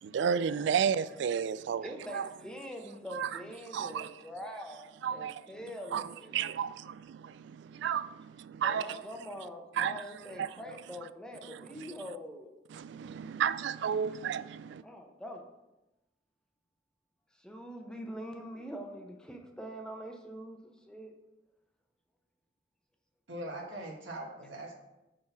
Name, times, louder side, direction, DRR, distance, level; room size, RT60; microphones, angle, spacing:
voice 1, 0.0-2.3 3.1-3.4 3.7-4.1 5.0-5.4 5.9-9.0 9.8-10.0 10.4-10.5 11.4-11.9 12.7-14.8, right 7 dB, 70° right, 0.3 m, -33 dB
voice 2, 1.8-6.3 8.6-12.5 14.8-15.4 17.3-21.1, equal, 5° left, 0.8 m, -44 dB
voice 3, 23.3-24.7, right 1 dB, 85° right, 1.5 m, -41 dB
6.5 x 3.7 x 5.8 m
head